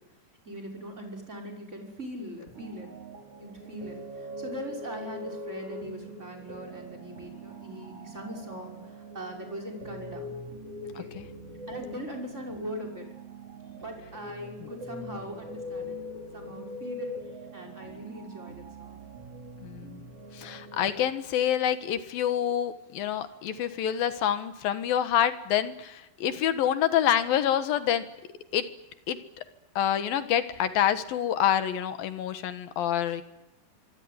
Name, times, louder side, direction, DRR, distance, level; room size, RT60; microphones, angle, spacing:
voice 1, 0.4-2.9 3.4-10.3 10.8-11.1 11.7-13.1 13.8-16.0 16.3-17.1 17.5-19.0, equal, 20° right, 1 dB, 6.2 m, -41 dB
sound 1, 2.5-21.1, equal, 45° right, 4.2 m, -42 dB
voice 2, 19.6-20.0 20.3-28.1 28.5-28.7 29.1-29.4 29.8-33.2, left 10 dB, 85° left, 10 dB, 3.3 m, -27 dB
25.5 x 24.5 x 9.7 m, 0.93 s
omnidirectional pair, 4.0 m